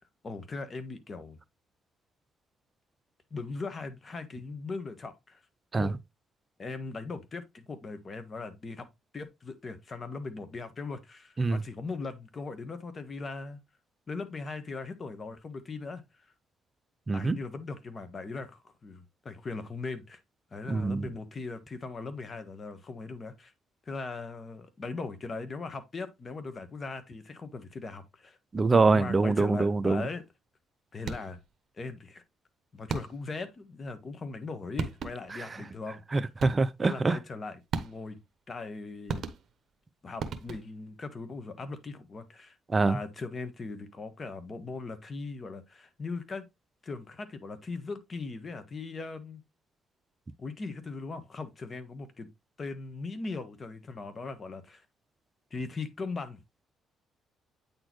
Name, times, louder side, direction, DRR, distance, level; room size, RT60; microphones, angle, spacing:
voice 1, 0.2-1.4 3.3-5.4 5.7-5.9 6.6-8.8 9.1-13.6 14.1-16.0 17.1-20.2 20.5-23.5 23.9-28.4 28.7-30.2 30.9-31.4 31.8-32.2 32.7-36.0 36.8-38.2 38.5-39.2 40.0-46.5 46.8-49.4 50.4-52.3 52.6-54.8 55.5-56.4, left 3 dB, 35° left, 1.3 m, -39 dB
voice 2, 17.1-17.4 20.7-21.1 28.5-30.0 36.1-37.2 42.7-43.0, right 3 dB, 30° right, 0.5 m, -24 dB
sound 1, 31.0-31.5 32.9-33.4 34.4-34.5 34.8-35.4 36.4-36.9 37.7-38.3 39.1-39.8 40.2-40.9, right 5 dB, 60° right, 1.0 m, -37 dB
8.6 x 4.2 x 3.1 m
cardioid pair, 90°, 0 cm